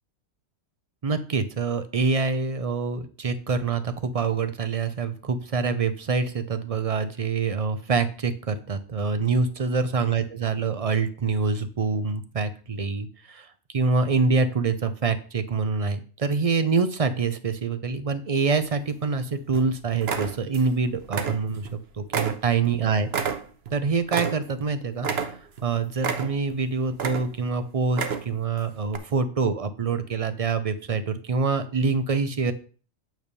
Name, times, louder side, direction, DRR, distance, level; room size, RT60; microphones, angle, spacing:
voice 1, 1.0-23.3 23.7-32.5, right 4 dB, 40° right, 11 dB, 0.6 m, -26 dB
sound 1, 18.5-19.2 19.5-19.7 20.0-20.8 21.0-21.8 22.1-24.7 25.0-25.6 26.0-26.6 26.9-27.5 27.9-28.5 28.9-29.0, right 6 dB, 55° right, 1.0 m, -30 dB
9.2 x 3.5 x 6.7 m, 0.40 s
omnidirectional pair, 1.4 m